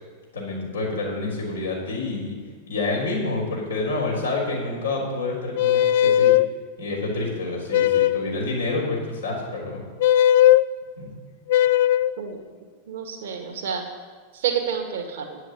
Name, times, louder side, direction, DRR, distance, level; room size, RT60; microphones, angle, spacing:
voice 1, 0.3-2.4 2.7-6.3 6.8-9.8 11.0-11.1, left 2 dB, 70° left, -3 dB, 4.3 m, -28 dB
sound 1, 5.5-6.5 7.7-8.3 10.0-10.6 11.5-12.1, left 12 dB, 55° left, 0.3 m, -17 dB
voice 2, 12.9-13.9 14.3-15.4, right 7 dB, 55° right, 3 dB, 1.9 m, -29 dB
9.4 x 7.7 x 8.7 m, 1.5 s
figure-of-eight pair, 90°, 0 cm